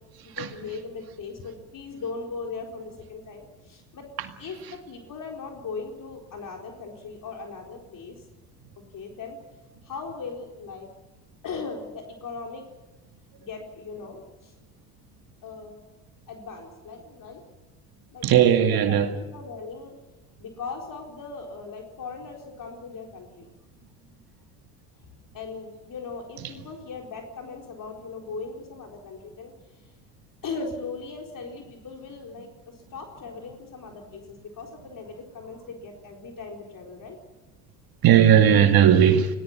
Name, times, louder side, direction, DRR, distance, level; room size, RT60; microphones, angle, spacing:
voice 1, 0.2-4.1 4.4-8.2 8.9-9.4 9.8-10.9 11.4-12.6 13.4-14.5 15.4-15.9 16.3-17.4 18.1-19.9 20.4-23.5 25.3-29.5 30.4-37.2, left 4 dB, 45° left, 4.3 m, -38 dB
voice 2, 18.2-19.1 38.0-39.3, right 9 dB, 50° right, 2.1 m, -17 dB
20.5 x 18.5 x 9.0 m
hypercardioid pair, 65°, 46 cm